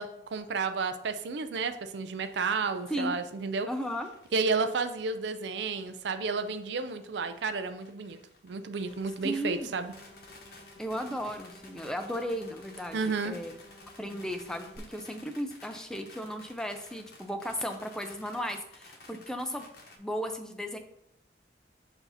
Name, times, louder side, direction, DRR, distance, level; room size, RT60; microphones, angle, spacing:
voice 1, 0.0-3.7 4.3-8.2 8.4-9.9 12.9-13.4, right 4 dB, 75° right, 9 dB, 0.4 m, -31 dB
sound 1, 1.9-20.0, left 2 dB, 55° left, 0.9 m, -55 dB
voice 2, 3.7-4.1 9.2-9.7 10.8-13.5 14.0-19.7 20.0-20.8, equal, 5° left, 5 dB, 0.4 m, -35 dB
sound 2, 8.8-14.8, left 1 dB, 80° left, 1.2 m, -54 dB
6.9 x 2.7 x 5.4 m, 0.78 s
head